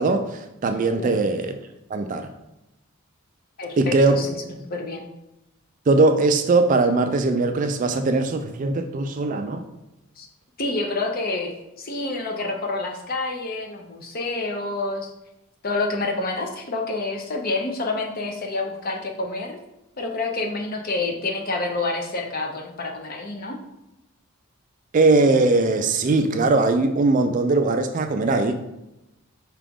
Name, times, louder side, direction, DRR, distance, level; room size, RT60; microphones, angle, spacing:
voice 1, 0.0-1.6 1.9-2.3 3.8-4.2 5.9-9.6 24.9-28.6, right 3 dB, 35° right, 7 dB, 0.3 m, -20 dB
voice 2, 3.6-4.3 4.6-5.1 10.2-10.3 10.6-15.1 15.6-19.6 20.0-23.6, left 3 dB, 45° left, 2 dB, 0.6 m, -28 dB
4.9 x 2.9 x 3.5 m, 0.92 s
head